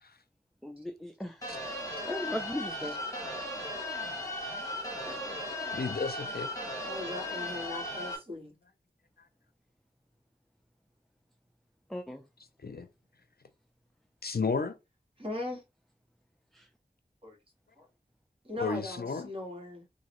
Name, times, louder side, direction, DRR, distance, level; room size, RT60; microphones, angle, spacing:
voice 1, 0.6-1.5 2.0-3.0 11.9-12.2 16.5-16.7, left 1 dB, ahead, 0.5 m, -37 dB
sound 1, 1.4-8.2, left 1 dB, 20° left, 1.6 m, -37 dB
voice 2, 5.1-5.7 6.8-8.5 15.2-15.6 17.2-17.4 17.8-17.9 18.4-19.9, left 2 dB, 30° right, 1.9 m, -39 dB
voice 3, 5.7-6.5 12.6-12.9 14.2-14.7 18.6-19.3, left 4 dB, 65° left, 0.6 m, -33 dB
3.8 x 2.7 x 3.0 m
wide cardioid pair, 50°, 18 cm